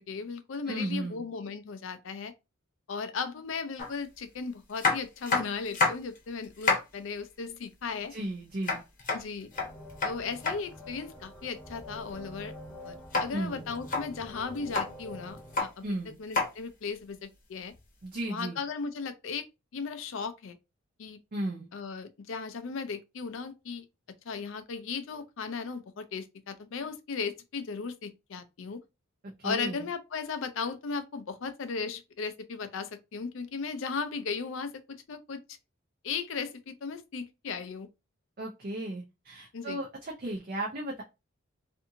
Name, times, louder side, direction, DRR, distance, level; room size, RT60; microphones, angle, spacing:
voice 1, 0.0-2.3 2.9-8.1 9.1-9.5 10.0-12.5 12.8-15.8 16.2-17.7 18.3-19.5 19.7-20.6 21.0-21.2 21.7-23.9 24.2-28.8 29.4-35.4 36.0-37.9 39.5-39.8, left 5 dB, 65° left, 0.4 m, -36 dB
voice 2, 0.7-1.3 8.1-8.8 13.3-13.7 15.8-16.2 18.0-18.6 21.3-21.7 29.4-29.9 38.4-41.0, right 1 dB, 45° right, 0.5 m, -35 dB
sound 1, 3.8-3.9 4.8-6.2 6.4-6.9 8.6-10.6 13.1-13.3 13.8-14.0 14.6-14.9 15.4-15.7 16.3-16.5 17.7-17.8, left 3 dB, 40° left, 0.8 m, -28 dB
sound 2, 9.5-15.6, left 1 dB, 10° left, 0.9 m, -46 dB
2.6 x 2.5 x 2.6 m
head